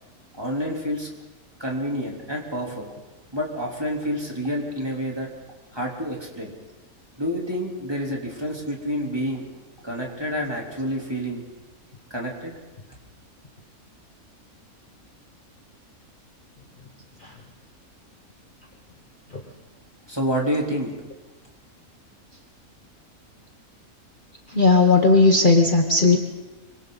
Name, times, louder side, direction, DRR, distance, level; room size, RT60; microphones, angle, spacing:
voice 1, 0.4-1.1 1.6-2.9 3.3-5.3 5.7-6.5 7.2-9.4 9.8-11.4 12.1-12.5 20.1-20.9, equal, 15° right, -2 dB, 3.7 m, -28 dB
voice 2, 24.5-26.2, left 3 dB, 35° left, 2 dB, 1.4 m, -16 dB
26.0 x 25.0 x 4.1 m, 1.2 s
omnidirectional pair, 1.6 m